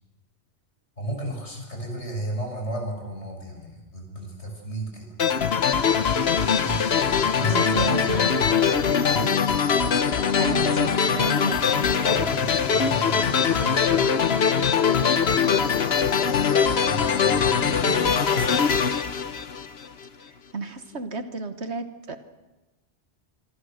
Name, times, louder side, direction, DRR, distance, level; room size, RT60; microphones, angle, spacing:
voice 1, 1.0-5.1 6.6-7.0 7.3-7.9 9.1-9.4 12.0-14.2 16.8-18.6, right 1 dB, 85° left, 1 dB, 7.2 m, -34 dB
sound 1, 5.2-20.0, left 6 dB, 65° left, 1.2 m, -22 dB
voice 2, 7.2-8.6 10.4-12.0 20.5-22.2, right 4 dB, 75° right, 8 dB, 1.7 m, -33 dB
27.0 x 24.5 x 6.5 m, 1.1 s
omnidirectional pair, 1.1 m